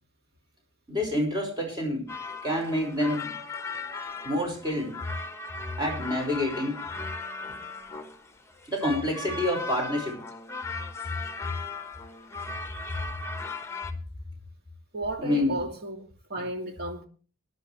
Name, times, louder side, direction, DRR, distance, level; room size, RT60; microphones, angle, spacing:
voice 1, 0.9-2.1 2.4-3.3 4.2-5.0 5.8-6.8 8.7-10.2 15.2-15.6, left 1 dB, 20° right, 5.5 m, -28 dB
sound 1, 2.1-13.9, left 3 dB, 15° left, 1.2 m, -38 dB
voice 2, 14.9-17.1, right 1 dB, 50° right, 2.7 m, -34 dB
22.0 x 11.0 x 3.2 m
head